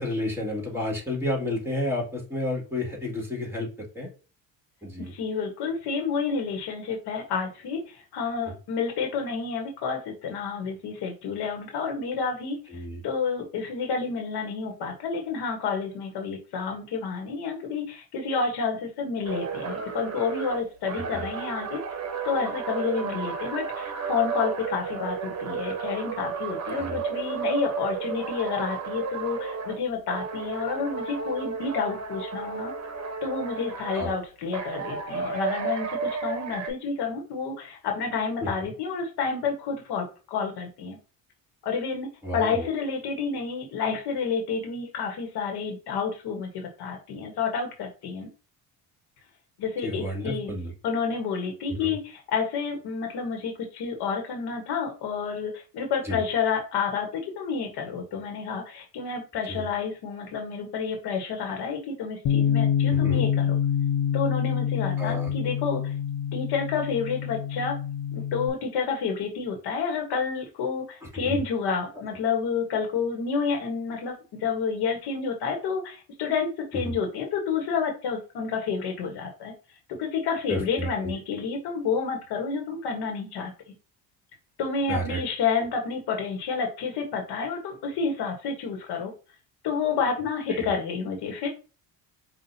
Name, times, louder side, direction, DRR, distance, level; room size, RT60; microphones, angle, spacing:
voice 1, 0.0-3.7 4.0-4.1 4.8-5.1 12.7-13.0 21.1-21.2 26.7-27.0 33.9-34.2 38.4-38.7 42.2-42.7 49.8-50.7 51.7-51.9 56.0-56.2 59.5-59.7 63.0-63.2 65.0-65.3 71.2-71.4 76.8-77.0 80.5-81.2 84.9-85.2 90.5-90.6, left 1 dB, 5° right, -1 dB, 1.9 m, -31 dB
voice 2, 5.1-12.6 13.0-21.8 22.2-32.7 33.2-41.0 41.6-42.1 42.3-48.3 49.6-50.5 50.8-57.1 57.3-63.6 64.1-65.9 66.3-67.8 68.1-74.1 74.4-79.5 80.0-83.5 84.6-89.1 89.6-91.5, left 5 dB, 70° left, 3 dB, 1.2 m, -29 dB
sound 1, 19.2-29.8 30.1-34.1 34.5-36.7, right 5 dB, 40° right, 1.0 m, -33 dB
Bass guitar, 62.3-68.5, left 9 dB, 55° left, 0.7 m, -26 dB
5.6 x 2.4 x 2.6 m, 0.34 s
supercardioid pair, 90°, 41 cm